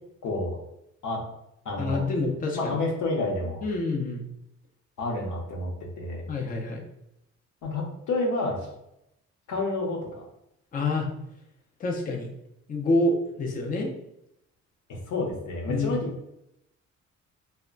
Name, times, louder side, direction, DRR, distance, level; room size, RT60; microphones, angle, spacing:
voice 1, 0.2-0.6 1.0-1.2 1.6-2.1 2.5-3.6 5.0-6.2 7.6-8.6 9.5-10.3 14.9-16.1, left 2 dB, 75° left, -1 dB, 0.8 m, -29 dB
voice 2, 1.8-2.8 3.6-4.2 6.3-6.8 10.7-11.1 11.8-12.3 12.7-13.9 15.7-16.0, left 2 dB, 30° left, 0 dB, 0.5 m, -27 dB
2.2 x 2.1 x 3.7 m, 0.81 s
cardioid pair, 90°, 30 cm